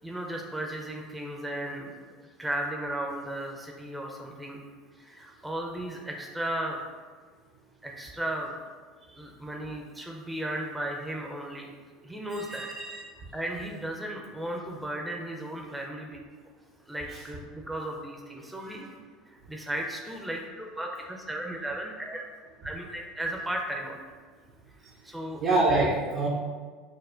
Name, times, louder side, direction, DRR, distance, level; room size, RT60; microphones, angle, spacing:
voice 1, 0.0-1.9 2.4-4.6 5.0-6.8 7.8-8.6 9.2-11.7 12.0-12.7 13.3-16.2 16.9-18.9 19.3-22.3 22.6-24.0 25.0-25.4, right 1 dB, 10° right, 0 dB, 0.5 m, -35 dB
voice 2, 12.4-13.0 18.6-18.8 25.4-26.3, right 2 dB, 50° right, -5 dB, 0.6 m, -26 dB
6.2 x 2.1 x 2.5 m, 1.5 s
figure-of-eight pair, 70°, 0 cm